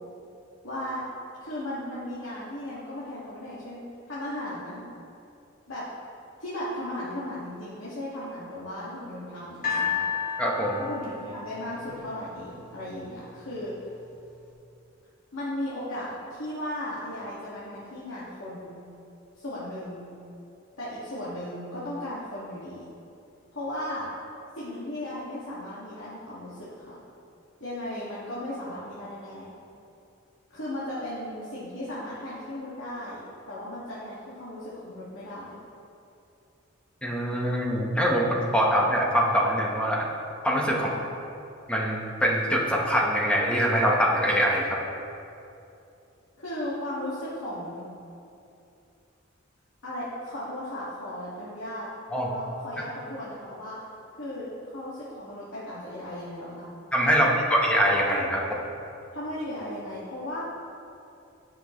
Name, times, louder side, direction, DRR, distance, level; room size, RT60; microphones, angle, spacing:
voice 1, 0.6-1.0 1.4-4.9 5.7-5.8 6.4-10.0 10.8-13.9 15.3-18.8 19.3-20.1 20.8-22.9 23.5-24.1 24.5-27.0 27.6-29.5 30.5-33.2 33.5-35.6 40.7-40.9 46.4-47.9 49.8-51.9 52.2-53.8 54.2-56.6 57.1-57.3 59.1-60.4, left 1 dB, 90° left, -10 dB, 2.1 m, -36 dB
sound 1, 9.6-12.8 13.6-13.7, left 6 dB, 45° left, 2.2 m, -32 dB
voice 2, 10.4-10.8 37.0-40.1 40.4-40.9 41.7-44.8 52.1-52.3 56.9-58.6, equal, 5° left, -3 dB, 1.3 m, -24 dB
17.0 x 6.1 x 3.2 m, 2.7 s
head